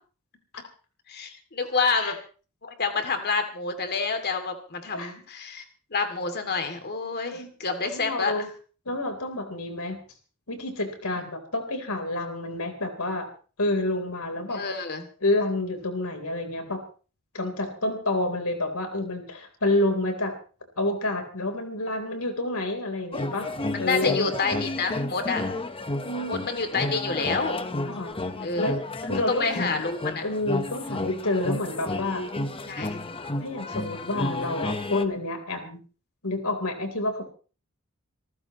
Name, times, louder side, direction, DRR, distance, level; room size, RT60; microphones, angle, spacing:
voice 1, 1.1-2.2 2.6-5.6 5.9-8.3 11.0-11.2 14.5-15.1 23.7-25.4 26.3-27.6 28.4-28.7 29.3-30.2 32.7-33.0, left 4 dB, 50° left, 6 dB, 2.6 m, -28 dB
voice 2, 7.8-8.5 8.9-10.0 10.5-13.3 13.6-14.6 15.2-16.8 17.3-20.3 20.8-23.5 23.8-24.3 26.0-26.4 27.9-28.1 28.6-29.8 30.2-32.3 33.4-35.8 36.2-37.2, left 2 dB, 80° left, 5 dB, 3.9 m, -29 dB
sound 1, 23.1-35.0, left 2 dB, 25° left, 1.1 m, -32 dB
26.5 x 14.5 x 3.1 m, 0.38 s
head